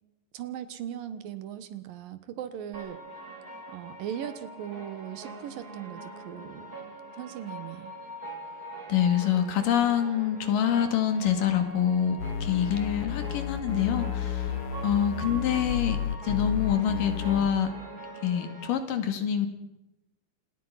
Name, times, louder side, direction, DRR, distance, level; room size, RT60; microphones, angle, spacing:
voice 1, 0.3-3.0 3.7-6.7 7.1-7.9, right 10 dB, 85° right, 13 dB, 3.2 m, -38 dB
sound 1, 2.7-18.7, right 1 dB, 25° right, 3.8 m, -43 dB
voice 2, 8.9-14.5 14.8-17.7 18.2-19.5, left 9 dB, 80° left, 9 dB, 3.7 m, -26 dB
sound 2, 12.2-17.5, left 9 dB, 65° left, 1.5 m, -32 dB
27.0 x 20.0 x 5.8 m, 0.95 s
omnidirectional pair, 3.9 m